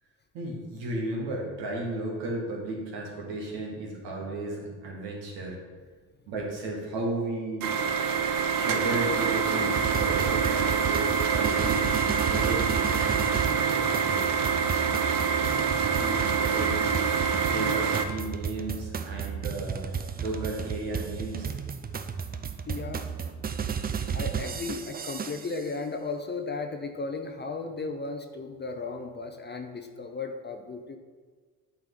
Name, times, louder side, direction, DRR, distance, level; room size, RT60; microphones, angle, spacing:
voice 1, 0.3-5.6 6.3-7.7 8.5-11.9 12.1-13.2 13.5-13.7 14.0-14.3 15.9-17.2 17.5-19.9 20.2-21.5, right 2 dB, 70° right, -2 dB, 2.1 m, -34 dB
sound 1, 7.6-18.0, right 6 dB, 45° right, 0.8 m, -26 dB
sound 2, 9.7-25.7, right 7 dB, 20° right, 0.4 m, -33 dB
voice 2, 22.7-23.1 24.1-31.0, left 3 dB, 25° left, 5 dB, 0.7 m, -35 dB
8.7 x 4.5 x 3.8 m, 1.5 s
hypercardioid pair, 65°, 45 cm